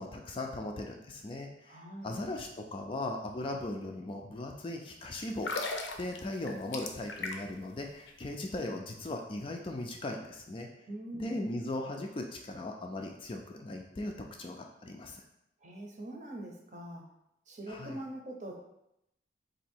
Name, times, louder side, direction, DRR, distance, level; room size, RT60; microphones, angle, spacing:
voice 1, 0.0-5.5 6.0-10.7 11.1-15.2 17.7-18.0, left 2 dB, 30° left, 3 dB, 0.4 m, -38 dB
voice 2, 1.7-2.1 10.9-11.4 15.6-17.0 17.5-18.6, right 1 dB, 40° right, 0 dB, 0.7 m, -43 dB
sound 1, 5.3-7.6 7.9-8.1, left 3 dB, 85° left, 0.6 m, -37 dB
3.9 x 2.7 x 4.3 m, 0.83 s
head